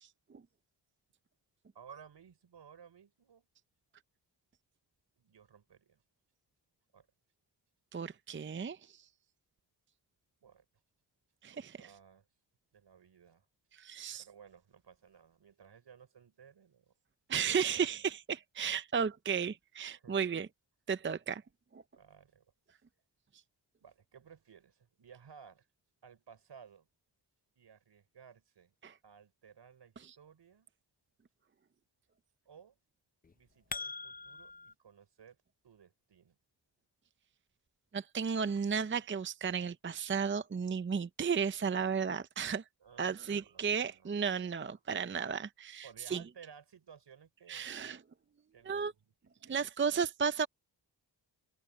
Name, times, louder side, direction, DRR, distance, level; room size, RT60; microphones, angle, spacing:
voice 1, 1.7-3.5 5.2-6.0 6.9-7.1 10.4-10.7 11.5-12.3 12.7-13.5 14.2-16.9 19.9-20.2 22.0-22.5 23.8-25.7 26.0-26.9 27.6-28.7 29.0-30.7 32.5-32.8 33.3-35.4 35.6-36.4 42.8-44.7 45.8-47.9 48.5-49.6 49.9-50.0, right 7 dB, 70° right, 5.3 m, -58 dB
voice 2, 7.9-9.1 11.4-11.8 13.7-14.2 17.3-20.5 20.9-21.4 21.7-21.8 28.8-28.9 30.1-30.2 37.9-42.6 43.0-46.2 47.5-48.0 48.7-48.9 49.5-50.5, right 6 dB, 25° right, 0.6 m, -34 dB
sound 1, 33.2-34.7, left 4 dB, 20° left, 0.6 m, -43 dB
cardioid pair, 75°, 44 cm